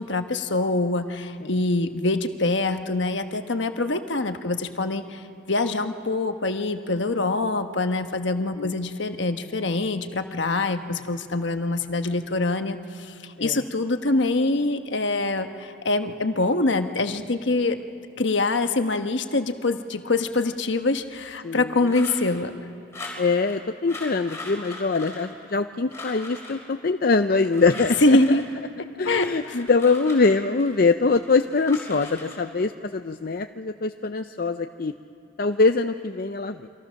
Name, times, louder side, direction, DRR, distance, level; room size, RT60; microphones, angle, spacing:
voice 1, 0.0-17.8 18.2-22.5 28.0-28.4 28.8-29.6, left 2 dB, 65° left, 7 dB, 1.2 m, -24 dB
voice 2, 21.4-21.7 23.2-28.2 29.0-34.9 35.4-36.7, left 4 dB, 50° left, 8 dB, 0.5 m, -23 dB
sound 1, 21.8-22.4 22.9-23.6 23.9-25.6 25.9-26.6 27.3-28.5 29.1-30.7 31.1-32.4, left 2 dB, 15° left, 5.4 m, -40 dB
28.5 x 25.0 x 6.4 m, 2.6 s
head